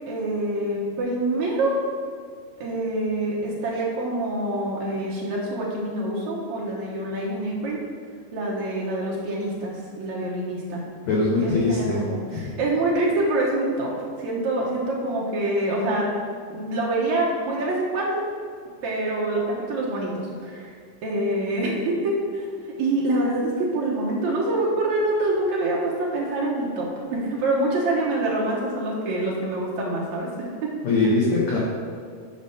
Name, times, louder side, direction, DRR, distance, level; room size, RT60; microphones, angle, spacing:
voice 1, 0.1-1.8 2.6-7.8 8.3-10.8 11.4-13.9 14.2-16.1 16.5-18.2 18.8-22.5 22.8-30.3, right 2 dB, 80° right, -4 dB, 1.6 m, -26 dB
voice 2, 11.1-12.0 12.3-12.5 30.8-31.6, left 3 dB, 80° left, -6 dB, 1.6 m, -22 dB
7.0 x 5.3 x 5.6 m, 2.1 s
omnidirectional pair, 5.0 m